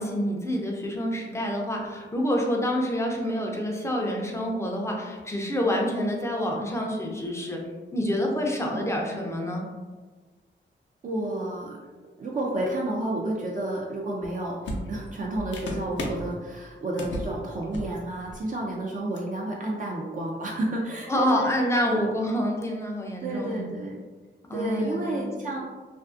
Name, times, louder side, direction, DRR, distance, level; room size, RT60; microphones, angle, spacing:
voice 1, 0.0-7.7 7.9-9.7 21.1-23.7 24.5-25.6, equal, 15° left, 0 dB, 0.4 m, -27 dB
voice 2, 11.0-11.8 12.2-21.5 21.8-22.1 22.4-22.5 23.2-24.0 24.5-25.6, right 1 dB, 45° right, -3 dB, 0.4 m, -31 dB
sound 1, 14.2-14.3 14.6-16.3 17.0-17.3 17.6-18.0 18.2-18.4 19.1-19.2, equal, 70° left, 0.5 m, -34 dB
2.4 x 2.4 x 2.4 m, 1.4 s
wide cardioid pair, 100°, 20 cm